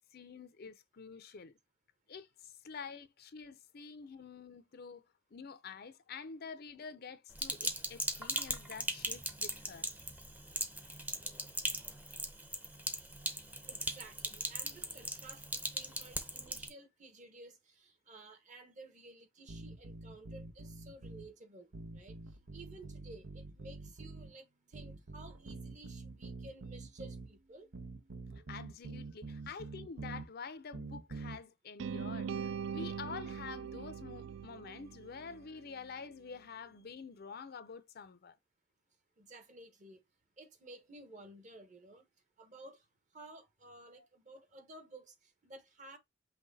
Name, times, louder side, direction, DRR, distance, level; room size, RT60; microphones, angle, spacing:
voice 1, 0.1-1.5 2.1-5.0 5.3-9.9 28.5-38.4 44.0-44.1, left 5 dB, 50° left, 0.5 m, -48 dB
Sink (filling or washing), 7.3-16.7, right 1 dB, 10° right, 0.7 m, -39 dB
voice 2, 13.7-22.2 22.5-27.7 39.2-40.0 40.4-42.0 42.4-42.8 43.1-46.0, right 2 dB, 40° right, 1.0 m, -54 dB
sound 1, 19.5-21.3 21.7-24.3 24.7-27.3 27.7-30.3 30.7-31.4, right 3 dB, 90° right, 0.8 m, -46 dB
sound 2, 31.8-35.9, right 7 dB, 70° right, 0.3 m, -41 dB
5.8 x 2.2 x 4.0 m
head